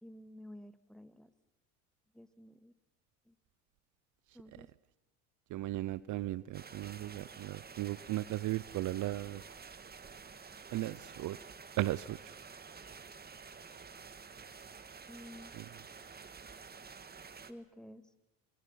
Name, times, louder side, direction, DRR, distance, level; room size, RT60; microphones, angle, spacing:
voice 1, 0.0-1.3 2.1-2.7 3.3-3.4 4.3-4.7 15.1-15.5 17.5-18.1, left 1 dB, ahead, 10 dB, 2.0 m, -52 dB
voice 2, 5.5-9.4 10.7-11.4 11.8-12.3 15.6-15.7, right 15 dB, 55° right, 19 dB, 0.8 m, -36 dB
sound 1, 6.5-17.5, right 5 dB, 25° right, 1.9 m, -51 dB
29.0 x 26.0 x 5.8 m, 0.95 s
supercardioid pair, 90°, 37 cm